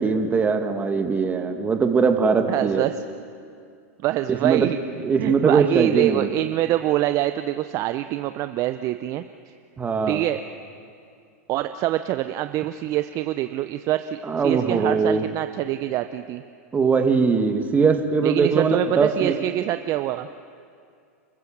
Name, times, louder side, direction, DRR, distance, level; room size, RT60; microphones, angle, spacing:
voice 1, 0.0-2.8 4.4-4.7 5.0-6.3 9.8-10.2 14.3-15.2 16.7-19.3, right 5 dB, 20° right, 5 dB, 2.1 m, -21 dB
voice 2, 2.5-3.0 4.0-4.8 5.2-9.6 10.1-10.4 11.5-16.4 18.2-20.3, right 14 dB, 40° right, 10 dB, 0.7 m, -25 dB
29.5 x 14.0 x 7.4 m, 2.3 s
hypercardioid pair, 110°, 8 cm